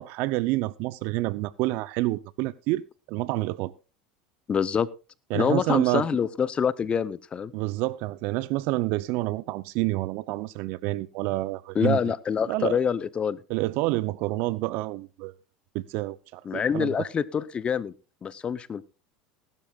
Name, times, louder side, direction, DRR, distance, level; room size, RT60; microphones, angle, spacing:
voice 1, 0.0-2.8 3.1-3.7 5.3-6.1 7.5-12.0 12.5-12.8 13.5-15.3 15.7-16.9, right 19 dB, 65° right, 0.7 m, -28 dB
voice 2, 4.5-4.9 5.3-7.5 11.7-13.4 16.4-17.9 18.2-18.9, left 7 dB, 30° left, 0.8 m, -26 dB
18.5 x 12.0 x 2.4 m
supercardioid pair, 100°, 4 cm